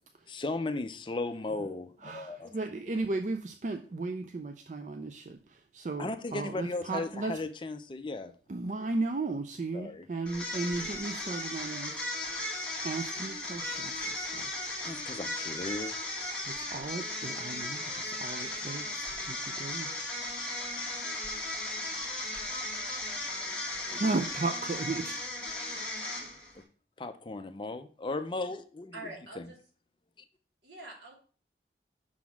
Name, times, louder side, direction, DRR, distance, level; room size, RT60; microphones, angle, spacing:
voice 1, 0.3-2.6 6.0-8.3 9.7-10.0 14.8-15.9 26.6-26.7 27.0-29.5, left 2 dB, 25° left, 9 dB, 0.4 m, -36 dB
voice 2, 2.0-7.4 8.5-12.1 12.8-14.5 16.5-19.9 20.9-21.0 22.6-22.8 23.9-25.2, right 3 dB, 45° right, 7 dB, 0.4 m, -35 dB
sound 1, 10.3-26.6, left 2 dB, 5° left, 1.5 m, -36 dB
voice 3, 28.9-29.6 30.6-31.1, right 2 dB, 75° right, -2 dB, 2.5 m, -44 dB
6.1 x 3.9 x 5.8 m, 0.41 s
head